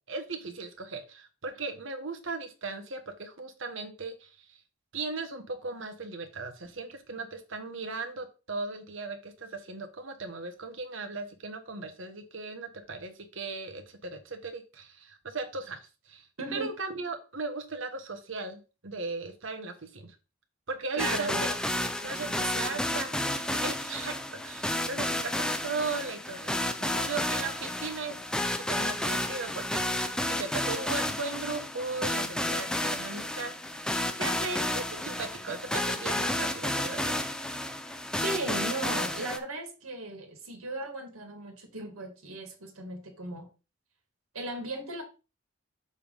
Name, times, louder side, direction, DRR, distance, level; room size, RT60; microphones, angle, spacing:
voice 1, 0.1-4.6 4.9-16.3 16.5-20.1 20.7-21.5 21.8-23.2 23.5-28.2 28.5-33.8 34.1-37.2, right 3 dB, 60° right, 1.2 m, -37 dB
voice 2, 16.4-16.7 20.9-21.5 22.0-22.8 38.2-43.5 44.3-45.0, right 2 dB, 85° right, 2.0 m, -36 dB
sound 1, 21.0-39.4, left 1 dB, 5° left, 0.4 m, -31 dB
6.7 x 3.6 x 5.2 m
head